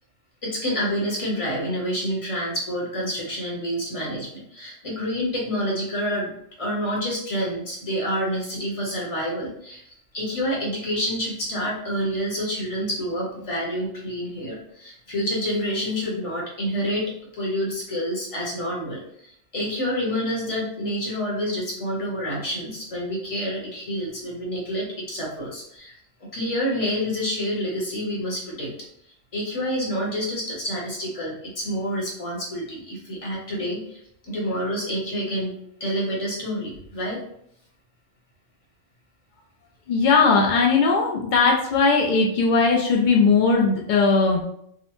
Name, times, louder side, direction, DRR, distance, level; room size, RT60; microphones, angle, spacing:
voice 1, 0.4-6.3 6.6-9.8 10.1-25.9 26.3-28.7 29.3-35.5 35.8-37.2, equal, 30° left, -4 dB, 0.9 m, -28 dB
voice 2, 39.9-44.4, left 4 dB, 80° left, 0 dB, 0.4 m, -19 dB
3.6 x 2.1 x 2.9 m, 0.71 s
omnidirectional pair, 1.4 m